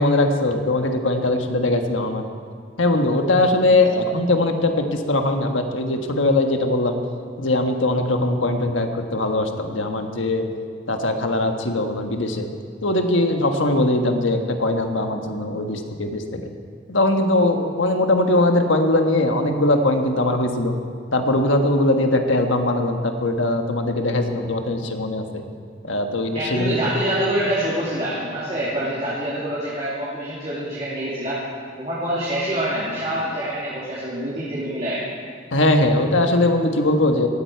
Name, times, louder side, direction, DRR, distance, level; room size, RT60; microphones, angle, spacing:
voice 1, 0.0-2.2 2.8-7.0 7.4-10.4 10.9-12.5 12.8-16.5 16.9-20.7 21.1-25.4 25.8-26.8 35.5-37.3, left 2 dB, 85° left, 4 dB, 1.4 m, -20 dB
voice 2, 26.3-31.4 31.8-35.0, right 1 dB, 35° right, -8 dB, 2.7 m, -26 dB
17.5 x 13.5 x 4.6 m, 2.2 s
head